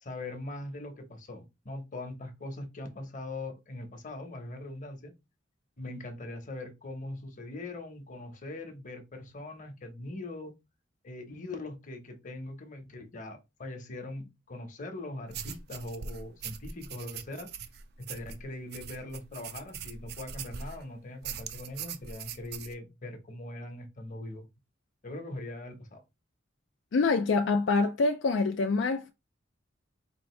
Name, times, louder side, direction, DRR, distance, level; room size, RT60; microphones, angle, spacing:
voice 1, 0.0-5.2 5.8-10.6 11.0-17.5 18.0-24.5 25.0-26.0, left 2 dB, 45° left, 1.0 m, -41 dB
sound 1, 15.3-20.8 21.2-22.8, right 7 dB, 60° right, 0.5 m, -42 dB
voice 2, 26.9-29.1, left 3 dB, 75° left, 0.4 m, -26 dB
4.5 x 2.6 x 3.1 m
head